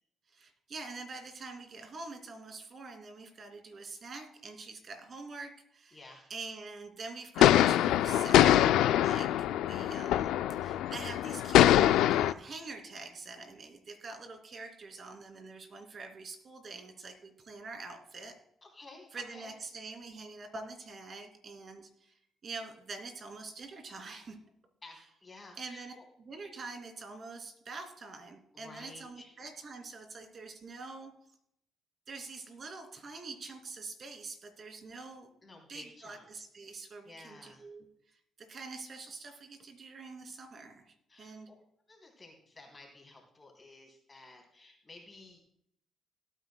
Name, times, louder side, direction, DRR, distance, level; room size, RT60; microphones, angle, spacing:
voice 1, 0.3-6.0 6.3-18.3 19.1-24.4 25.6-31.1 32.1-41.5, right 3 dB, 45° right, 5 dB, 2.7 m, -45 dB
voice 2, 5.9-6.2 18.6-19.5 24.8-26.0 28.5-29.3 35.4-36.3 37.0-37.7 41.1-41.3 41.9-45.5, left 2 dB, 25° left, 1 dB, 3.4 m, -53 dB
sound 1, 7.4-12.3, left 12 dB, 90° left, 0.3 m, -24 dB
18.0 x 9.1 x 2.3 m, 0.73 s
cardioid pair, 90°, 0 cm